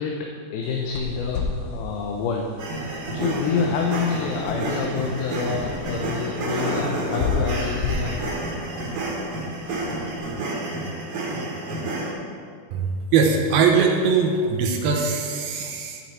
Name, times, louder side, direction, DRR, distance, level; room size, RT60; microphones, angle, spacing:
voice 1, 0.0-8.3, left 5 dB, 90° left, 1 dB, 2.7 m, -28 dB
sound 1, 0.6-10.0, left 4 dB, 65° left, 2.1 m, -33 dB
sound 2, 2.6-12.1, right 1 dB, 60° right, 3.2 m, -29 dB
voice 2, 12.7-16.0, right 5 dB, 85° right, 1 dB, 2.9 m, -21 dB
11.5 x 9.1 x 4.3 m, 2.1 s
omnidirectional pair, 4.2 m